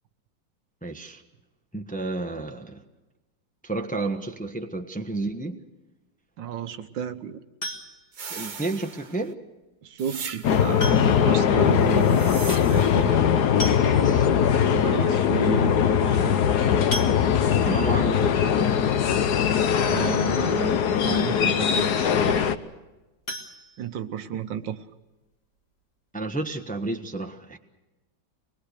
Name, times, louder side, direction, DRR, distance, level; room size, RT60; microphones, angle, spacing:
voice 1, 0.8-1.2 1.7-2.8 3.6-5.6 8.3-9.4 13.8-14.3 17.6-18.8 26.1-27.6, right 2 dB, 5° left, 5 dB, 1.0 m, -31 dB
voice 2, 6.4-7.4 9.8-12.3 12.7-13.3 14.7-16.5 19.8-20.8 21.0-22.5 23.8-24.8, right 9 dB, 75° right, 10 dB, 1.7 m, -32 dB
sound 1, 7.6-8.2 9.7-9.8 10.8-11.4 11.7-11.8 12.1-12.2 13.2-13.3 13.6-14.3 14.9-15.0 15.3-15.5 16.9-17.7 23.2-24.4 24.8-24.9 25.3-25.4 25.8-25.9, left 1 dB, 35° left, 1.9 m, -35 dB
sound 2, 8.1-9.3 10.0-10.9 11.8-13.1, right 6 dB, 45° right, 0.6 m, -39 dB
sound 3, 10.4-22.6, left 8 dB, 60° left, 1.4 m, -21 dB
25.5 x 20.5 x 6.7 m, 1.1 s
omnidirectional pair, 2.0 m